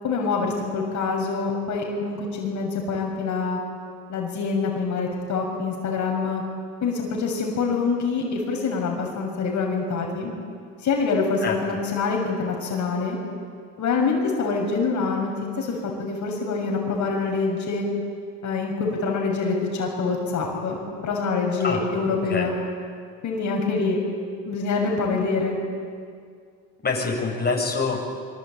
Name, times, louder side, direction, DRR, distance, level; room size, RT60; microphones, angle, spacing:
voice 1, 0.0-3.6 4.1-6.4 6.8-10.3 10.8-13.2 13.8-15.3 15.6-17.9 18.4-22.5 23.2-24.0 24.4-25.6, left 4 dB, 55° left, 0 dB, 6.7 m, -25 dB
voice 2, 26.8-28.0, left 4 dB, 25° left, -1 dB, 7.8 m, -25 dB
24.5 x 24.5 x 9.1 m, 2.2 s
supercardioid pair, 85°, 35 cm